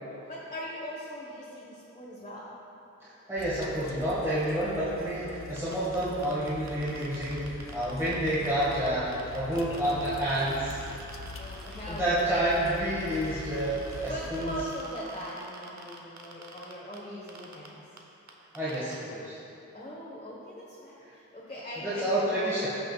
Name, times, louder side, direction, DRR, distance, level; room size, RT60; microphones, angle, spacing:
voice 1, 0.3-2.5 11.4-12.3 14.0-17.9 19.7-22.6, equal, 25° left, -7 dB, 1.4 m, -40 dB
voice 2, 3.0-10.8 11.9-14.7 18.5-19.4 21.1-21.2 21.8-22.7, right 1 dB, 10° right, -11 dB, 2.0 m, -29 dB
sound 1, 3.4-14.7, left 3 dB, 50° left, 0.6 m, -43 dB
sound 2, 5.6-8.9 9.1-17.0 17.3-17.7 18.0-18.1 18.3-19.0, right 3 dB, 70° right, 1.0 m, -48 dB
14.0 x 6.4 x 2.5 m, 2.9 s
wide cardioid pair, 75°, 29 cm